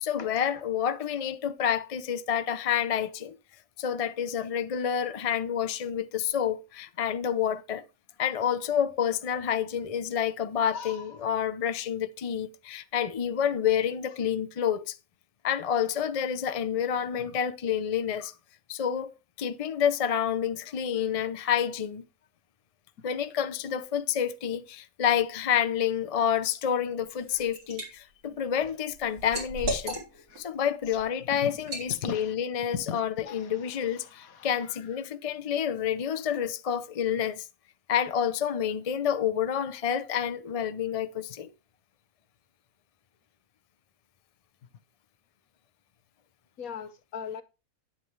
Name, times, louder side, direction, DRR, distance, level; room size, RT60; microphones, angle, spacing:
voice 1, 0.0-3.4 3.8-7.8 8.2-15.0 15.4-18.3 18.7-22.0 23.0-30.0 30.4-37.5 37.9-41.5, left 8 dB, 45° left, 0.5 m, -29 dB
voice 2, 10.7-11.2 17.2-17.4 18.2-18.3 26.2-26.4 28.6-28.7 30.3-30.4 31.3-31.5 32.0-32.4 32.7-33.0 33.2-34.7 46.6-47.4, left 7 dB, 70° left, 1.4 m, -39 dB
Liquid, 27.1-27.9 28.3-30.4 30.8-31.0 31.6-31.9, right 1 dB, 75° right, 4.6 m, -35 dB
9.7 x 8.3 x 3.2 m
omnidirectional pair, 1.5 m